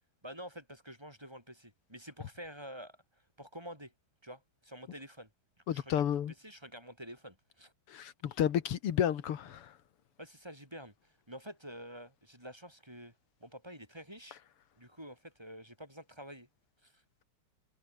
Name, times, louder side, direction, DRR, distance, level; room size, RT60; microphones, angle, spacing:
voice 1, 0.2-3.0 3.4-3.9 4.2-5.3 5.7-5.9 6.4-7.7 10.2-13.1 13.4-14.4 14.8-16.5 16.8-17.0, equal, 10° right, 5.9 m, -48 dB
voice 2, 5.7-6.3 7.9-9.7, left 10 dB, 90° left, 2.4 m, -31 dB
omnidirectional pair, 2.4 m